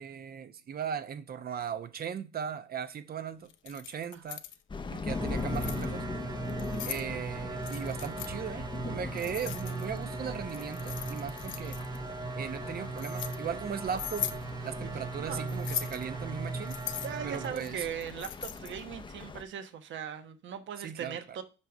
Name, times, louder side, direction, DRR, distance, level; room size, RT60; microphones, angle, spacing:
voice 1, 0.0-4.4 4.9-6.1 6.9-11.8 12.3-14.3 14.6-16.8 17.2-17.9 20.8-21.2, right 7 dB, 50° right, 0.8 m, -38 dB
Keys jangling, 3.5-4.6 5.3-5.9 6.5-7.1 7.6-8.3 9.2-10.0 10.5-12.0 12.6-13.4 13.9-14.4 15.5-16.0 16.7-18.8, left 11 dB, 75° left, 0.7 m, -39 dB
sound 1, 4.7-19.4, left 4 dB, 25° left, 0.7 m, -41 dB
sound 2, 5.1-17.5, right 3 dB, 20° right, 0.4 m, -39 dB
voice 2, 6.8-7.2 11.6-11.7 15.2-15.5 16.8-21.4, right 8 dB, 70° right, 1.1 m, -40 dB
5.5 x 5.3 x 6.1 m
cardioid pair, 90°, 20 cm